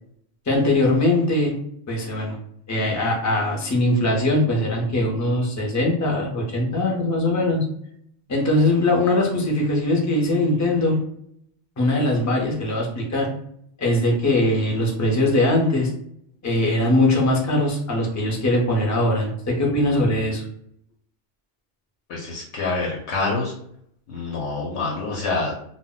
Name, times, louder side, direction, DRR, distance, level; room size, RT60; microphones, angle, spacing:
voice 1, 0.5-1.5 1.9-2.4 2.7-7.6 8.3-11.0 11.8-13.3 13.8-15.9 16.4-20.4, left 1 dB, 25° left, -1 dB, 0.4 m, -21 dB
voice 2, 22.1-23.5 24.1-25.6, left 3 dB, 70° left, -2 dB, 0.8 m, -26 dB
2.1 x 2.1 x 3.8 m, 0.68 s
omnidirectional pair, 1.2 m